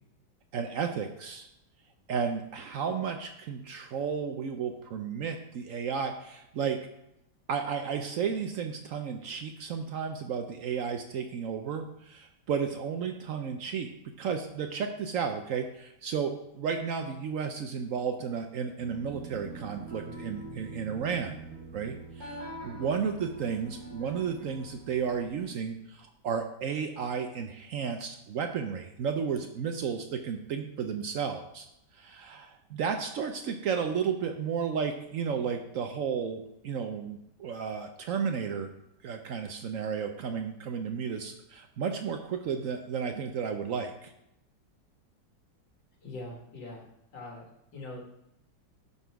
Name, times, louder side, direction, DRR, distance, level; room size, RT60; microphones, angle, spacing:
voice 1, 0.5-1.5 2.1-6.8 7.5-13.9 14.2-21.4 21.7-31.7 31.9-38.7 39.0-44.1, right 6 dB, 75° right, 6 dB, 0.7 m, -33 dB
sound 1, 18.8-25.4, right 2 dB, 35° right, 3.7 m, -44 dB
voice 2, 46.0-46.9 47.1-48.1, left 2 dB, 80° left, 0 dB, 2.4 m, -42 dB
11.5 x 4.1 x 4.6 m, 0.84 s
omnidirectional pair, 2.0 m